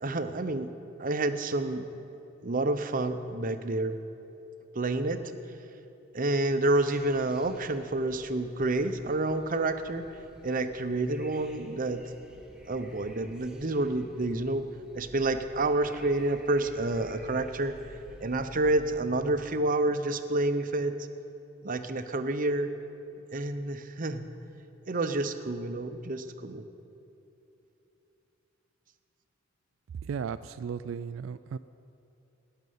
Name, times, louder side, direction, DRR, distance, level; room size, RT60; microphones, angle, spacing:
voice 1, 0.0-0.7 1.0-1.8 2.4-4.0 4.7-5.2 6.1-10.1 10.4-12.1 12.7-14.7 14.9-17.7 18.2-20.9 21.6-22.7 23.3-24.3 24.9-26.6, right 2 dB, 45° right, 9 dB, 0.8 m, -29 dB
sound 1, 6.9-19.0, equal, 5° right, 1.2 m, -51 dB
voice 2, 30.0-31.6, right 6 dB, 80° right, 12 dB, 0.3 m, -35 dB
19.0 x 6.7 x 9.2 m, 2.9 s
head